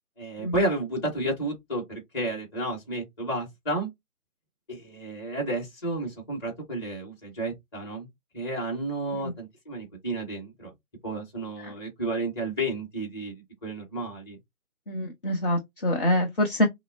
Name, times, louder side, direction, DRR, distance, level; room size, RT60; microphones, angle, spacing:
voice 1, 0.2-3.9 4.7-8.1 8.3-10.7 11.0-14.4, right 1 dB, 20° left, 1.7 m, -31 dB
voice 2, 14.9-16.7, left 1 dB, 40° left, 0.8 m, -26 dB
5.5 x 2.0 x 2.5 m
figure-of-eight pair, 155°, 44 cm